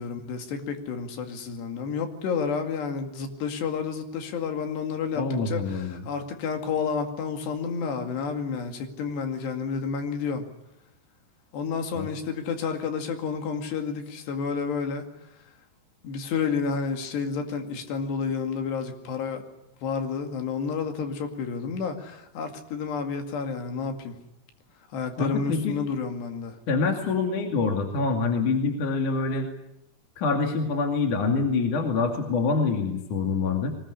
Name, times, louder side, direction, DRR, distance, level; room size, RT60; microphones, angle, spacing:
voice 1, 0.0-10.5 11.5-15.1 16.0-19.4 19.8-24.2 24.9-26.6, left 5 dB, 75° left, 5 dB, 4.4 m, -30 dB
voice 2, 5.2-6.0 11.9-12.1 25.2-25.8 26.7-29.5 30.2-33.8, left 4 dB, 50° left, 3 dB, 3.5 m, -25 dB
23.0 x 20.0 x 9.9 m, 0.85 s
omnidirectional pair, 4.9 m